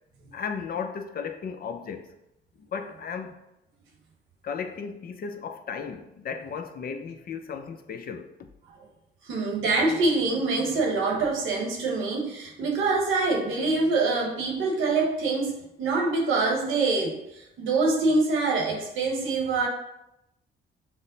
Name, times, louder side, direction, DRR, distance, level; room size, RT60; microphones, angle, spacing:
voice 1, 0.3-2.1 2.7-3.4 4.4-8.3, left 6 dB, 50° left, 0.5 m, -35 dB
voice 2, 9.3-15.5 15.8-17.2 17.6-19.7, right 3 dB, 85° right, 1.1 m, -25 dB
5.9 x 2.1 x 3.9 m
cardioid pair, 90°, 20 cm